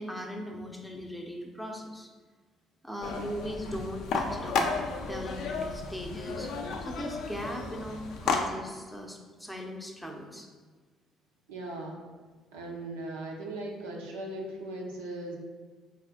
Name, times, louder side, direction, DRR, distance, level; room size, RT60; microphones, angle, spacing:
voice 1, 0.0-2.1 2.8-6.5 6.8-10.5, equal, 5° left, 1 dB, 0.7 m, -39 dB
sound 1, 3.0-8.4, left 4 dB, 60° left, 0.4 m, -33 dB
voice 2, 11.5-12.0 12.5-15.4, right 2 dB, 75° right, -2 dB, 0.5 m, -38 dB
4.7 x 2.4 x 3.5 m, 1.4 s
figure-of-eight pair, 50°, 0 cm